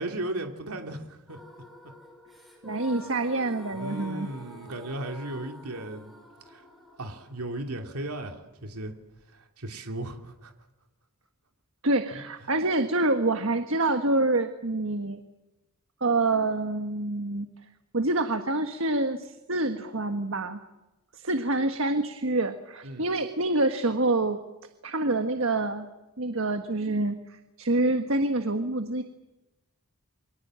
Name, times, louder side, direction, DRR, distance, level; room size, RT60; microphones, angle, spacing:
voice 1, 0.0-1.4 3.7-6.1 6.5-6.6 7.0-8.9 9.3-10.5 22.8-23.1, right 1 dB, 90° right, 4 dB, 2.7 m, -36 dB
sound 1, 1.3-9.2, equal, ahead, 6.6 m, -48 dB
voice 2, 2.6-4.3 11.8-15.2 16.0-17.5 17.9-20.6 21.1-24.4 24.8-25.9 26.2-29.0, right 2 dB, 65° right, 7 dB, 1.5 m, -26 dB
28.5 x 24.0 x 7.6 m, 1.0 s
head